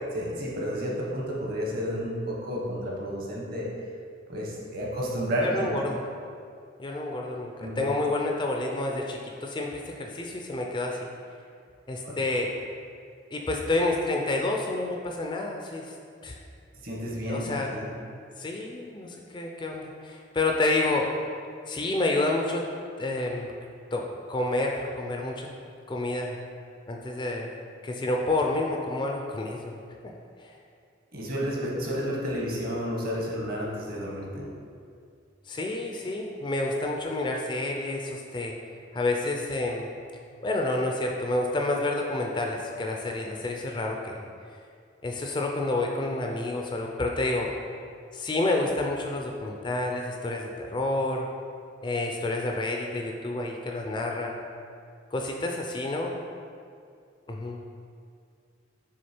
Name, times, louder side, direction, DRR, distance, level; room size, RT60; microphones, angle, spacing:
voice 1, 0.1-3.7 4.3-5.7 7.6-7.9 12.0-12.2 16.8-17.9 31.1-34.5, equal, 50° right, -3 dB, 1.1 m, -31 dB
voice 2, 5.4-6.0 6.8-11.0 11.9-12.5 13.3-15.9 16.2-16.4 17.3-17.7 18.4-21.1 21.7-22.6 23.0-23.5 23.9-25.5 25.9-26.4 26.9-27.5 27.8-29.7 30.4-30.5 35.5-38.5 38.9-39.9 40.4-44.2 45.0-47.5 48.1-51.3 51.8-54.4 55.1-56.2 57.3-57.6, left 2 dB, 25° left, 1 dB, 0.4 m, -29 dB
6.3 x 3.5 x 4.4 m, 2.3 s
head